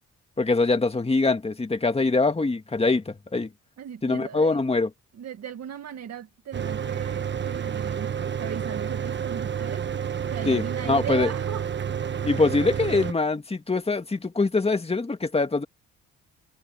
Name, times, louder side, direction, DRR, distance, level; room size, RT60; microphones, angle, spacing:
voice 1, 0.4-3.5 4.0-4.9 10.5-11.3 12.2-15.7, left 3 dB, 20° left, 2.2 m, -23 dB
voice 2, 3.8-4.6 5.1-11.9, right 8 dB, 60° right, 2.0 m, -38 dB
Mechanical fan, 6.5-13.1, right 8 dB, 40° right, 1.2 m, -30 dB
cardioid pair, 90°, 30 cm